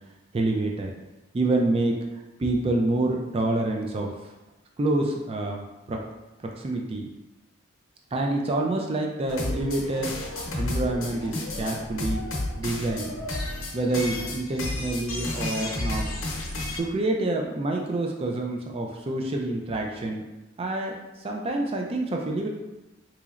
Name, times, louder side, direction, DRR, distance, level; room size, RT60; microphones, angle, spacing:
voice 1, 0.3-0.9 1.3-2.0 2.4-4.1 4.8-5.6 5.9-6.0 6.4-7.1 8.1-10.1 10.6-12.2 12.6-13.1 13.7-16.1 16.8-20.2 20.6-22.5, right 2 dB, 30° right, 1 dB, 0.3 m, -27 dB
sound 1, 9.3-16.8, left 1 dB, 85° left, 0.8 m, -31 dB
3.8 x 3.1 x 2.4 m, 1.1 s
head